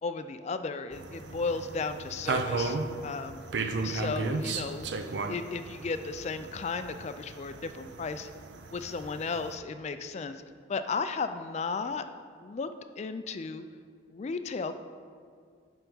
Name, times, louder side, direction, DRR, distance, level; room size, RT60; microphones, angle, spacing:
voice 1, 0.0-2.8 3.0-4.9 5.2-8.3 8.7-10.4 10.7-12.0 12.4-12.7 13.0-13.6 14.1-14.7, left 4 dB, 35° left, 10 dB, 0.3 m, -34 dB
sound 1, 0.9-9.6, right 3 dB, 60° right, 0.5 m, -35 dB
10.0 x 3.4 x 5.5 m, 2.2 s
head